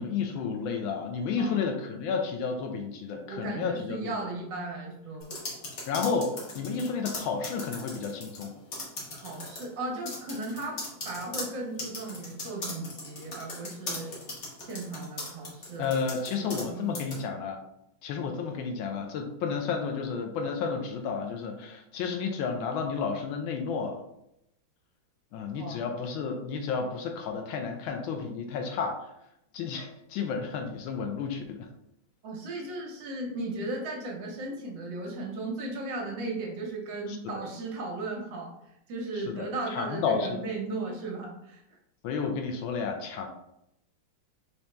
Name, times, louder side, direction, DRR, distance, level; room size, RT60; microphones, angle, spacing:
voice 1, 0.0-4.1 5.9-8.6 15.8-17.6 18.0-24.0 25.3-29.1 29.5-31.7 37.1-37.4 39.3-39.4 39.7-40.4 42.0-43.3, left 5 dB, 80° left, 4 dB, 1.3 m, -31 dB
voice 2, 3.2-5.3 9.1-14.1 14.6-15.9 16.3-17.2 25.6-25.8 32.2-38.5 38.9-41.6, right 2 dB, 65° right, -1 dB, 1.5 m, -36 dB
sound 1, 5.2-8.4 8.7-9.6 10.0-16.7 16.9-17.2, left 2 dB, 45° left, 1.1 m, -38 dB
4.3 x 2.8 x 3.3 m, 0.82 s
omnidirectional pair, 2.2 m